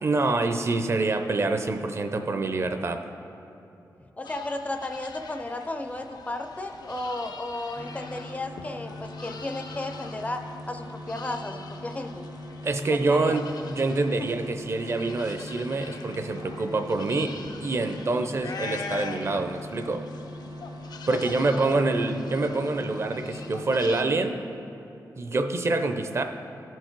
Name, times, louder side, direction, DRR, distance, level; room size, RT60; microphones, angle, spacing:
voice 1, 0.0-3.0 12.6-20.0 21.1-24.4 25.2-26.2, right 3 dB, 40° right, 7 dB, 0.5 m, -26 dB
sound 1, 4.2-24.0, left 4 dB, 85° left, 0.5 m, -44 dB
voice 2, 4.2-12.2 12.9-13.4 21.1-21.2 21.5-21.8, left 2 dB, 20° left, 6 dB, 0.4 m, -34 dB
sound 2, 7.7-23.8, left 1 dB, 80° right, 1.9 m, -41 dB
13.5 x 4.6 x 4.5 m, 2.9 s
wide cardioid pair, 145°, 7 cm